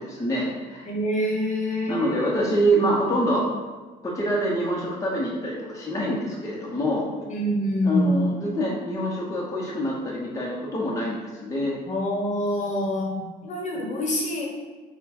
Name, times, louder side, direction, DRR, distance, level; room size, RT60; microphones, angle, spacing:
voice 1, 0.0-0.9 1.9-3.5 4.0-7.1 7.8-11.8, right 1 dB, 20° left, -4 dB, 0.8 m, -26 dB
voice 2, 0.8-2.4 7.3-8.3 11.9-14.5, equal, 45° left, -1 dB, 1.0 m, -26 dB
4.4 x 2.2 x 4.2 m, 1.3 s
cardioid pair, 110°, 17 cm